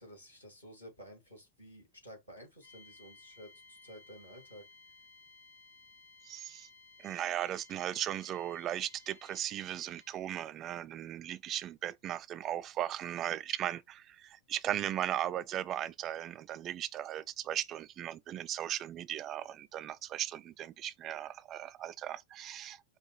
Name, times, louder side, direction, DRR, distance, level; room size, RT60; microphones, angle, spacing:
voice 1, 0.0-4.7, equal, 85° left, 2.6 m, -52 dB
sound 1, 2.6-10.3, left 4 dB, 70° left, 1.1 m, -59 dB
voice 2, 6.3-6.7 7.0-22.8, right 11 dB, 30° right, 0.3 m, -37 dB
4.9 x 2.1 x 4.5 m
figure-of-eight pair, 90°, 0 cm